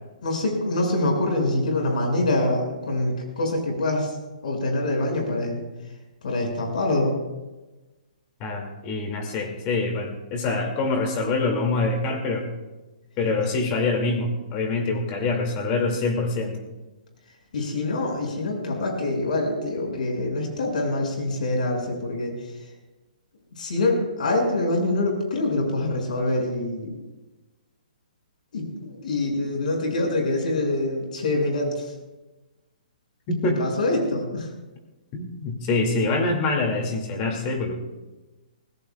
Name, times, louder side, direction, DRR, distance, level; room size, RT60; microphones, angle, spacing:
voice 1, 0.2-4.1 4.4-5.6 6.2-7.2 17.5-22.5 23.6-26.9 28.5-31.9 33.4-34.5, left 2 dB, 65° left, 1 dB, 6.2 m, -25 dB
voice 2, 8.4-12.5 13.2-16.7 33.3-33.6 35.1-37.8, left 3 dB, 25° left, 2 dB, 2.4 m, -25 dB
25.0 x 17.5 x 2.4 m, 1.1 s
hypercardioid pair, 160°, 5 cm